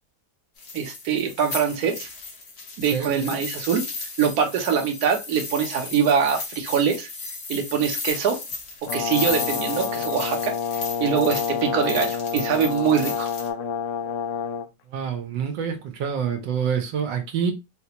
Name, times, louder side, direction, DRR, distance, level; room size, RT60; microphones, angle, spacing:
sound 1, 0.6-13.5, left 3 dB, 50° left, 1.1 m, -35 dB
voice 1, 0.7-2.1 2.8-3.8 4.2-7.1 7.5-8.4 8.9-10.6 11.0-13.3, right 7 dB, 65° right, 1.1 m, -23 dB
voice 2, 2.9-3.4 14.9-17.5, right 7 dB, 90° right, 1.4 m, -27 dB
Brass instrument, 8.9-14.7, left 7 dB, 75° left, 0.7 m, -28 dB
3.9 x 2.2 x 2.8 m
omnidirectional pair, 1.9 m